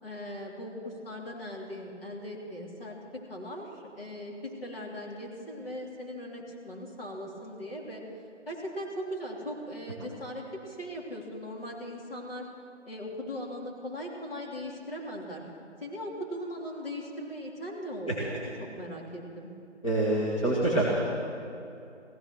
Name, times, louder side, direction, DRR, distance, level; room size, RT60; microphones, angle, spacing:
voice 1, 0.0-3.0 3.3-8.0 8.5-12.5 12.9-15.4 15.8-19.5, equal, 50° left, -3 dB, 3.4 m, -39 dB
voice 2, 19.8-21.0, right 1 dB, 25° left, -7 dB, 1.8 m, -26 dB
16.0 x 13.5 x 6.2 m, 2.6 s
figure-of-eight pair, 175°, 36 cm